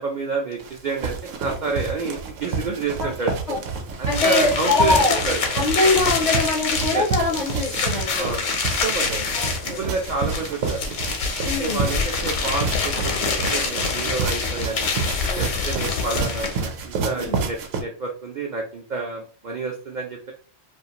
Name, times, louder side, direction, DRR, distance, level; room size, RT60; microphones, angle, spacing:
voice 1, 0.0-3.4 4.0-4.9 5.2-5.4 6.9-7.0 8.1-8.5 8.8-10.9 11.6-14.9 15.4-20.3, right 4 dB, 65° right, 0 dB, 0.4 m, -29 dB
sound 1, 0.6-17.8, right 4 dB, 80° right, 0.9 m, -30 dB
sound 2, 4.1-16.7, left 5 dB, 70° left, 0.9 m, -26 dB
voice 2, 4.1-5.2 5.5-8.3 9.3-9.8 11.4-11.9 15.0-15.5 17.1-17.4, left 3 dB, 50° left, -2 dB, 0.5 m, -23 dB
2.5 x 2.4 x 2.7 m, 0.40 s
omnidirectional pair, 1.3 m